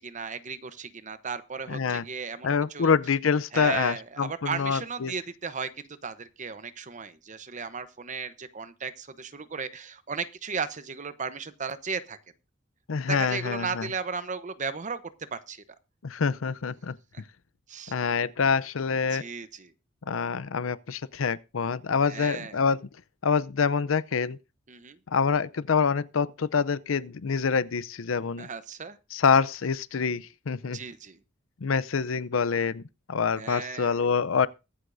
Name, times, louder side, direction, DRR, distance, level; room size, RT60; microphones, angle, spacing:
voice 1, 0.0-2.9 3.5-12.2 13.1-15.0 15.3-15.6 17.1-17.2 17.7-17.9 19.1-19.7 22.1-22.6 24.7-25.0 28.4-29.0 30.7-31.2 33.4-34.0, right 5 dB, 40° right, 0.9 m, -35 dB
voice 2, 1.7-2.0 2.4-5.1 12.9-13.9 16.0-17.0 17.9-19.2 20.1-22.9 23.2-24.4 25.1-28.5 29.1-30.8 31.6-32.8 33.1-34.5, left 5 dB, 85° left, 0.6 m, -26 dB
22.5 x 8.1 x 2.6 m
head